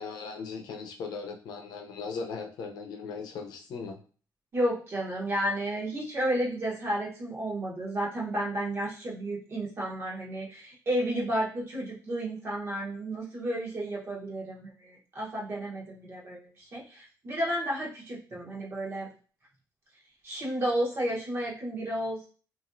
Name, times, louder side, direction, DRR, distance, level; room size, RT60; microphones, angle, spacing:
voice 1, 0.0-4.0, left 5 dB, 85° left, 3 dB, 0.6 m, -38 dB
voice 2, 4.5-19.1 20.2-22.3, right 1 dB, 35° right, -3 dB, 0.9 m, -32 dB
3.0 x 2.5 x 2.5 m, 0.40 s
cardioid pair, 160°, 7 cm